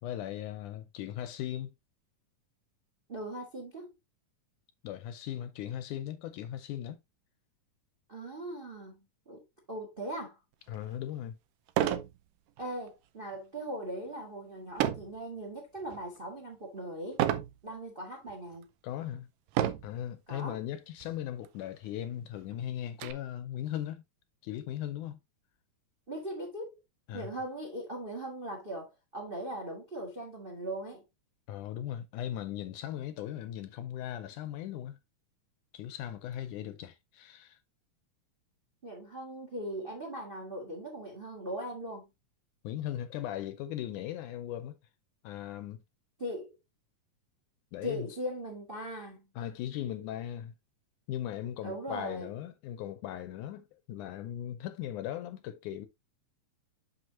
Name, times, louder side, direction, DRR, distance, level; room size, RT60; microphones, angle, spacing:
voice 1, 0.0-1.7 4.8-7.0 10.7-11.4 18.8-19.3 19.8-24.0 24.4-25.2 27.1-27.3 31.5-35.0 35.7-37.6 42.6-44.8 45.2-45.8 47.7-48.2 49.4-50.5 51.1-55.9, left 11 dB, 80° left, 2.0 m, -38 dB
voice 2, 3.1-3.9 8.1-10.4 12.6-17.2 17.6-18.7 20.3-20.6 26.1-26.8 27.1-31.0 38.8-42.1 46.2-46.5 47.8-49.3 51.6-52.4, right 1 dB, 40° right, 0.7 m, -39 dB
sound 1, 10.7-10.8 11.7-12.1 12.6-12.9 14.8-15.2 15.8-16.2 17.2-17.5 18.3-18.4 19.5-20.0 21.0-21.1 21.4-21.5 22.0-23.1, right 12 dB, 85° right, 2.3 m, -30 dB
7.8 x 5.9 x 2.7 m
omnidirectional pair, 3.9 m